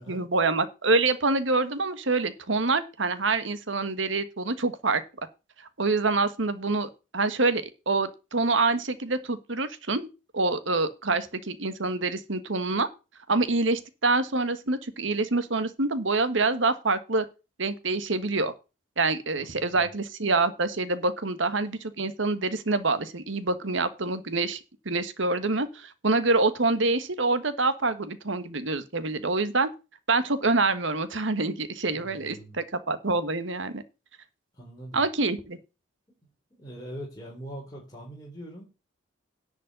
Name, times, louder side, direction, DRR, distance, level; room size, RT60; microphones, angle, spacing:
voice 1, 0.0-5.0 5.8-10.1 10.3-12.9 13.3-17.2 17.6-18.5 19.0-24.6 24.8-29.7 30.1-33.8 34.9-35.6, right 3 dB, 70° right, 12 dB, 1.4 m, -26 dB
voice 2, 19.4-19.9 31.9-32.6 34.5-35.0 36.1-36.2 36.5-38.6, right 1 dB, 20° left, -4 dB, 4.1 m, -42 dB
10.5 x 5.4 x 7.8 m, 0.30 s
head